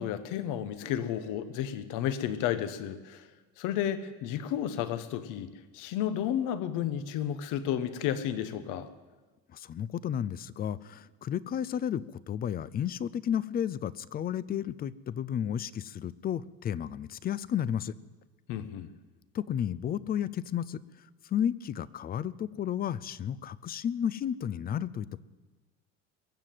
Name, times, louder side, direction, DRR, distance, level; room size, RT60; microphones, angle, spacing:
voice 1, 0.0-3.3 3.6-8.9 18.5-18.9, left 10 dB, 65° left, 12 dB, 1.1 m, -32 dB
voice 2, 9.5-17.9 19.3-20.8 21.3-25.2, left 9 dB, 30° left, 19 dB, 0.4 m, -32 dB
22.0 x 7.4 x 7.7 m, 1.3 s
cardioid pair, 130°, 33 cm